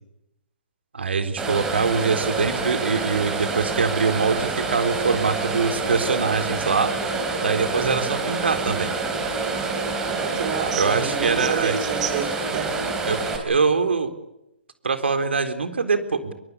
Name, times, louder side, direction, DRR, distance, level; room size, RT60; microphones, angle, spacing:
voice 1, 0.9-6.9 7.4-8.9 10.8-11.8 13.1-13.2 13.4-14.1 14.8-16.3, right 5 dB, 75° right, 8 dB, 3.9 m, -23 dB
sound 1, 1.4-13.4, right 3 dB, 10° right, 3.9 m, -27 dB
voice 2, 7.7-8.1 10.0-12.7, right 7 dB, 35° right, 10 dB, 4.7 m, -29 dB
24.0 x 23.0 x 8.3 m, 0.89 s
hypercardioid pair, 160°, 6 cm